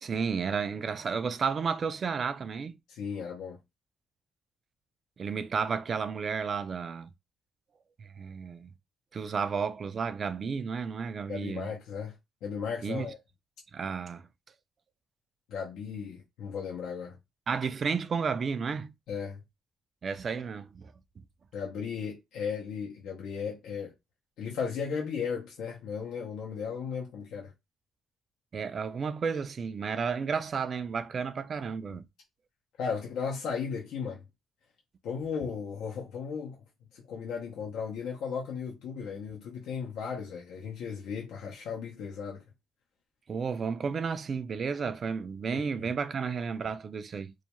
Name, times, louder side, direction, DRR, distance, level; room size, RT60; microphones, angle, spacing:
voice 1, 0.0-2.8 5.2-7.1 8.0-8.7 9.1-11.7 12.8-13.1 13.7-14.2 17.5-18.9 20.0-21.2 28.5-32.1 43.3-47.3, right 5 dB, 45° right, 0.3 m, -32 dB
voice 2, 2.9-3.6 11.3-12.1 12.4-13.2 15.5-17.2 19.1-19.4 21.5-23.9 24.4-27.5 32.8-34.2 35.0-36.6 37.1-42.4 45.5-45.6, left 6 dB, 85° left, 0.6 m, -35 dB
2.3 x 2.2 x 2.9 m
cardioid pair, 90°, 0 cm